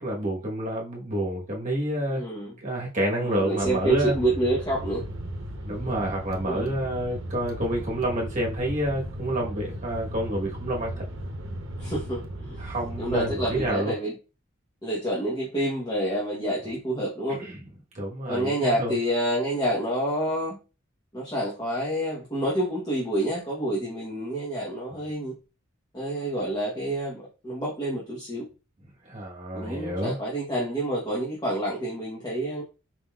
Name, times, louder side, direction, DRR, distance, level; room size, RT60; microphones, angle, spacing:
voice 1, 0.0-2.2 2.6-4.1 5.6-11.0 12.6-13.9 17.4-17.6 17.9-18.9 29.0-30.2, right 1 dB, 35° right, 1.2 m, -28 dB
voice 2, 2.1-2.5 3.2-5.0 6.4-6.7 11.8-12.6 13.0-14.1 14.8-17.4 18.3-20.6 21.1-25.3 25.9-28.5 29.5-32.6, right 1 dB, 20° left, 1.0 m, -28 dB
sound 1, 3.6-13.7, right 1 dB, 65° right, 0.8 m, -36 dB
4.6 x 3.8 x 2.3 m
head